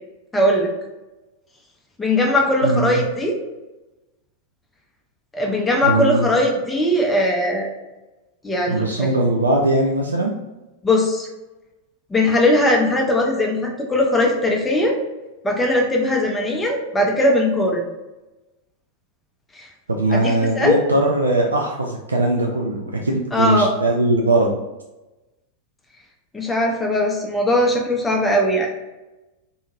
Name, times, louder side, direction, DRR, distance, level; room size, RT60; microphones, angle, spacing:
voice 1, 0.3-0.7 2.0-3.4 5.3-7.7 8.4-9.1 10.8-11.3 12.1-15.0 15.4-17.8 19.5-19.7 20.1-20.8 23.3-23.7 26.3-28.7, left 1 dB, 10° left, 0 dB, 0.6 m, -19 dB
voice 2, 2.6-3.0 5.8-6.3 8.7-10.3 19.9-24.6, right 2 dB, 75° right, 0 dB, 0.3 m, -20 dB
2.7 x 2.7 x 2.3 m, 1.0 s
figure-of-eight pair, 90°, 0 cm